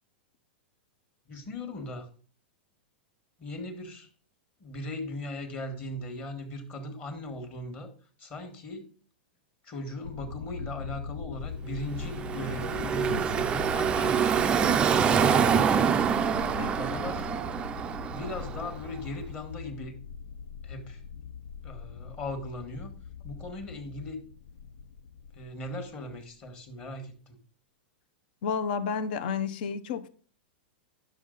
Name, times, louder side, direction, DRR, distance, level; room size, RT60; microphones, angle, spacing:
voice 1, 1.3-2.1 3.4-4.1 4.6-7.9 8.2-8.9 9.6-15.8 16.4-17.3 18.1-19.9 20.6-21.0 21.6-22.9 23.2-24.2 25.3-27.4, left 1 dB, 25° left, 1.5 m, -38 dB
sound 1, 10.0-26.5, left 6 dB, 85° left, 0.6 m, -42 dB
Car passing by / Traffic noise roadway noise, 11.9-18.9, right 7 dB, 15° right, 0.4 m, -26 dB
voice 2, 28.4-30.1, left 6 dB, 55° left, 0.8 m, -31 dB
9.9 x 6.5 x 3.9 m
supercardioid pair, 150°, 6 cm